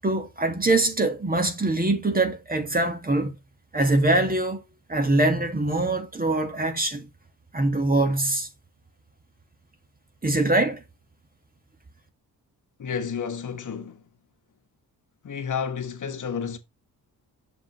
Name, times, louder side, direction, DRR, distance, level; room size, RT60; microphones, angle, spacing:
voice 1, 0.0-3.3 3.7-4.6 4.9-7.0 7.5-8.5 10.2-10.8, right 2 dB, 25° right, 1.8 m, -23 dB
voice 2, 12.8-14.0 15.2-16.6, left 6 dB, 55° left, 1.3 m, -31 dB
7.5 x 7.0 x 3.1 m
cardioid pair, 95°, 37 cm